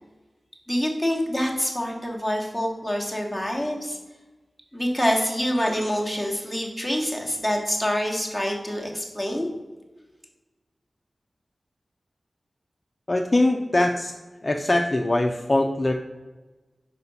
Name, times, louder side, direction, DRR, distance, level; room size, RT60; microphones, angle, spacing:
voice 1, 0.7-4.0 4.7-9.5, equal, ahead, 0 dB, 1.3 m, -26 dB
voice 2, 13.1-14.1 14.4-15.9, left 1 dB, 30° left, 3 dB, 0.4 m, -22 dB
5.1 x 4.1 x 5.5 m, 1.2 s
wide cardioid pair, 80°, 0 cm